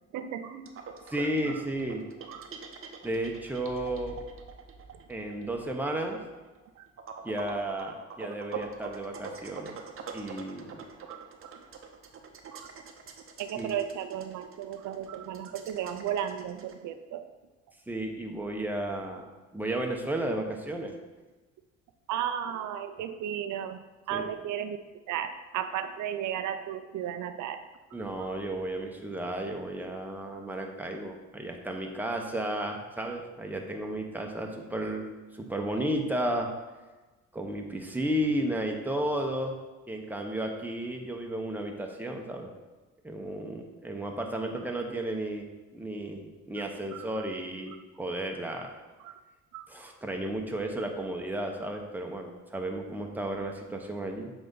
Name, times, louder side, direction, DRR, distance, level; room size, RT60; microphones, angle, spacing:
voice 1, 0.1-0.7 2.3-2.5 6.8-6.9 11.0-11.7 12.5-12.7 13.4-17.3 22.1-24.8 25.1-27.6 28.2-28.3 46.6-46.7 46.9-47.2 49.0-49.2 49.5-49.7, right 9 dB, 75° right, 9 dB, 0.5 m, -35 dB
sound 1, 0.7-16.7, right 6 dB, 45° right, 0.8 m, -44 dB
voice 2, 1.1-2.1 3.0-4.2 5.1-6.2 7.2-9.7 10.1-10.9 13.5-13.7 17.9-20.9 24.1-24.3 27.9-35.1 35.3-36.5 37.3-39.6 39.9-42.5 43.0-48.7 49.7-54.3, right 1 dB, 5° right, 2 dB, 0.9 m, -33 dB
7.6 x 4.0 x 3.9 m, 1.2 s
cardioid pair, 90°, 30 cm